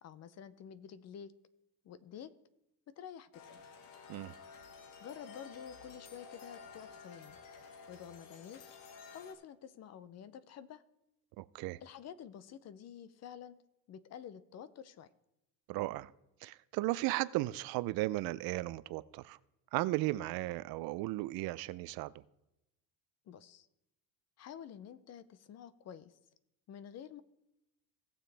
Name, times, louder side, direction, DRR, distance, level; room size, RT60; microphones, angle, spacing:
voice 1, 0.0-1.3 1.8-2.3 2.9-3.6 5.0-7.4 7.9-8.6 9.1-10.8 11.8-13.6 13.9-15.1 23.3-23.7 24.4-26.2 26.7-27.2, left 8 dB, 40° left, 0.6 m, -49 dB
sound 1, 3.3-9.3, left 5 dB, 85° left, 1.5 m, -52 dB
voice 2, 11.4-11.8 15.7-16.1 16.4-19.4 19.7-22.1, right 18 dB, 65° right, 0.5 m, -35 dB
18.0 x 7.2 x 3.4 m
cardioid pair, 125°, 40 cm